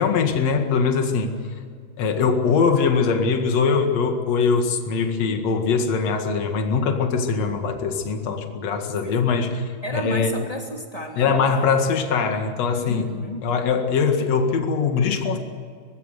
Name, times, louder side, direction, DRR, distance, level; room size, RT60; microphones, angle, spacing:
voice 1, 0.0-1.4 2.0-10.3 11.2-13.0 13.4-15.4, left 5 dB, 50° left, 5 dB, 2.7 m, -22 dB
voice 2, 9.8-11.3 12.8-13.4, left 1 dB, 10° left, 1 dB, 2.3 m, -32 dB
24.0 x 19.5 x 6.6 m, 2.2 s
omnidirectional pair, 4.4 m